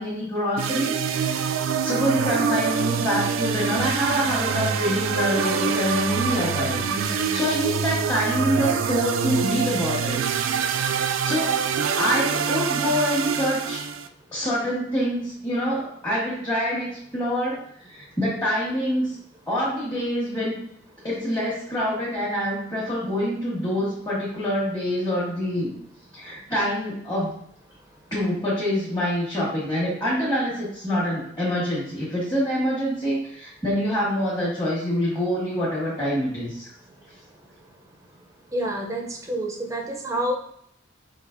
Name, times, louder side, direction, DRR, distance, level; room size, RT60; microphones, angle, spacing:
voice 1, 0.0-10.2 10.5-10.7 11.2-11.5 11.9-13.8 14.3-17.6 17.9-19.2 19.5-20.6 21.0-25.7 26.1-27.3 28.1-36.7, equal, 15° left, -9 dB, 1.2 m, -26 dB
sound 1, 0.6-14.1, right 6 dB, 80° right, 0.3 m, -25 dB
voice 2, 38.5-40.3, right 1 dB, 15° right, 1 dB, 0.5 m, -28 dB
4.9 x 2.9 x 2.5 m, 0.70 s
head